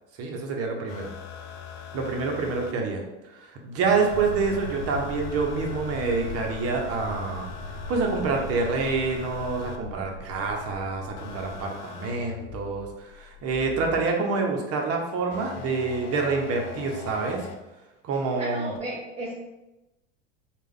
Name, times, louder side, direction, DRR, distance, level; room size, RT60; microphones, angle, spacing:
voice 1, 0.2-1.1 1.9-3.0 3.4-7.5 7.9-17.5 18.0-18.7, right 4 dB, 40° right, 1 dB, 0.9 m, -27 dB
sound 1, 0.9-2.7 3.8-9.8 11.2-14.1 15.3-17.6 18.8-18.9, left 6 dB, 55° left, 0.5 m, -41 dB
sound 2, 4.1-11.6, left 1 dB, 30° left, 1.2 m, -39 dB
voice 2, 18.4-19.3, right 1 dB, 15° right, -4 dB, 0.7 m, -34 dB
3.3 x 2.4 x 3.5 m, 1.0 s
hypercardioid pair, 95°, 36 cm